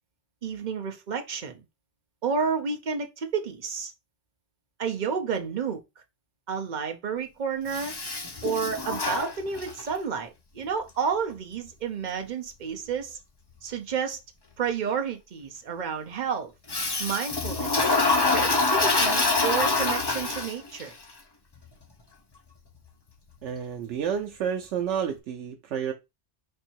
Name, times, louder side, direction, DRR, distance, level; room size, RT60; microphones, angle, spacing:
voice 1, 0.4-1.6 2.2-3.9 4.8-5.8 6.5-7.9 8.4-13.2 13.6-14.2 14.6-16.5 17.0-17.9 18.3-20.9, right 6 dB, 45° right, 0.8 m, -30 dB
Toilet flush, 7.7-9.9 16.7-20.8, left 3 dB, 25° left, 0.7 m, -25 dB
voice 2, 23.4-25.9, right 8 dB, 90° right, 0.9 m, -30 dB
4.5 x 2.7 x 4.3 m
omnidirectional pair, 1.2 m